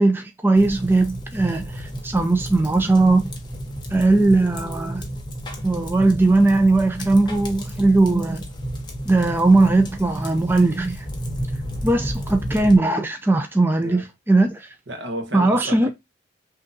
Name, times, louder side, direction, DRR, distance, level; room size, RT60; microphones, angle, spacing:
voice 1, 0.0-3.3 3.9-5.1 5.6-8.4 9.1-11.1 11.8-14.7 15.3-15.9, right 2 dB, 10° right, 0.4 m, -19 dB
sound 1, 0.5-12.8, equal, 25° left, 0.9 m, -32 dB
voice 2, 14.9-15.9, right 1 dB, 75° right, 1.1 m, -32 dB
5.9 x 2.7 x 2.6 m
head